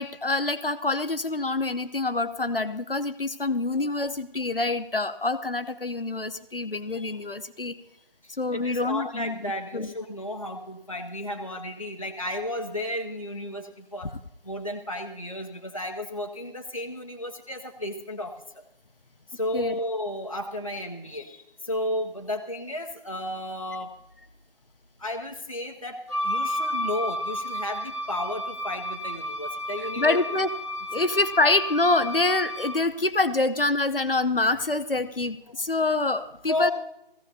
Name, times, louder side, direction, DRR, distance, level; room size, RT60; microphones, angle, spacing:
voice 1, 0.0-7.7 8.4-9.9 19.5-19.8 30.0-30.5 30.9-36.7, left 2 dB, 65° left, 10 dB, 0.9 m, -26 dB
voice 2, 8.2-14.1 14.4-18.6 19.3-23.9 25.0-30.2 36.5-36.7, left 1 dB, 35° left, 3 dB, 0.7 m, -33 dB
Wind instrument woodwind instrument, 26.1-32.9, equal, 30° right, 1.0 m, -32 dB
17.5 x 15.0 x 2.8 m, 0.83 s
figure-of-eight pair, 170°, 30 cm